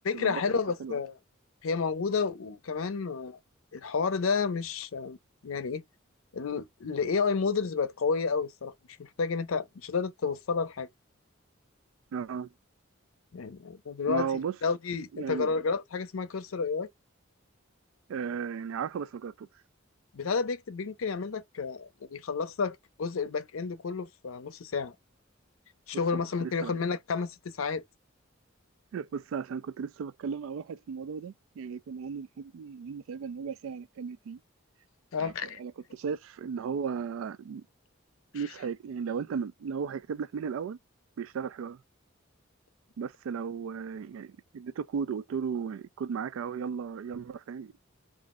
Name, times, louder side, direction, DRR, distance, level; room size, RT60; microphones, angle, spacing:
voice 1, 0.0-1.2 1.6-3.4 3.7-5.2 5.4-5.8 6.3-10.9 13.3-16.9 20.1-25.0 25.9-27.8 35.1-35.6 38.3-38.5, left 5 dB, 85° left, 0.5 m, -31 dB
voice 2, 12.1-12.5 14.1-14.5 15.1-15.5 18.1-19.5 26.1-26.7 28.9-34.4 35.2-35.3 35.6-37.7 38.3-40.8 41.2-41.8 43.0-47.7, right 6 dB, 75° right, 0.3 m, -35 dB
2.5 x 2.0 x 3.6 m
head